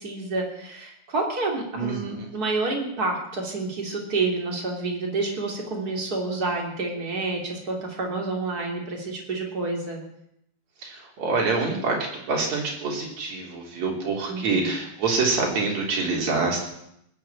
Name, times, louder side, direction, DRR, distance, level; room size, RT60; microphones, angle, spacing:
voice 1, 0.0-10.0 14.3-14.7, right 3 dB, 25° right, 0 dB, 3.2 m, -29 dB
voice 2, 1.7-2.3 10.8-16.7, right 3 dB, 50° right, -1 dB, 4.7 m, -26 dB
19.5 x 7.8 x 9.0 m, 0.77 s
omnidirectional pair, 4.1 m